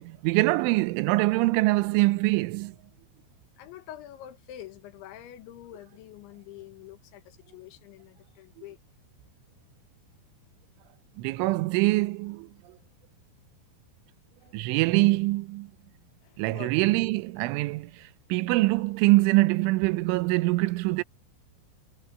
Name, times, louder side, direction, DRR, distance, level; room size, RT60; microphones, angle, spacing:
voice 1, 0.0-2.8 11.2-12.8 14.5-15.7 16.4-21.0, right 21 dB, 90° right, 3.2 m, -24 dB
voice 2, 3.6-8.8 14.4-14.6 16.2-16.8, left 12 dB, 80° left, 3.8 m, -46 dB
omnidirectional pair, 5.4 m